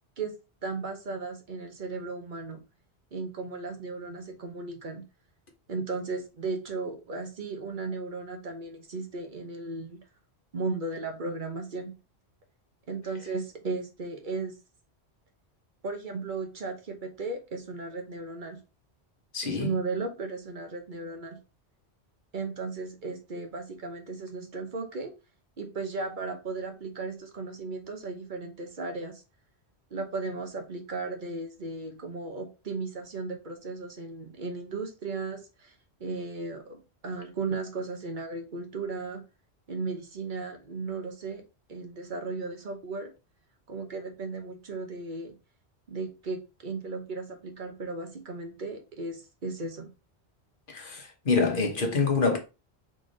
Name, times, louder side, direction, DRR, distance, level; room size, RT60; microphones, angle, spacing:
voice 1, 0.6-2.6 3.1-5.0 5.7-10.0 10.5-12.0 12.9-14.6 15.8-18.6 19.4-21.4 22.3-25.1 25.6-29.2 29.9-35.7 36.0-39.2 39.7-41.4 41.7-43.1 43.7-45.3 45.9-49.9, right 3 dB, 50° right, 1.0 m, -35 dB
voice 2, 19.3-19.7 50.7-52.4, left 4 dB, 50° left, 1.2 m, -26 dB
3.9 x 3.4 x 3.9 m
omnidirectional pair, 1.1 m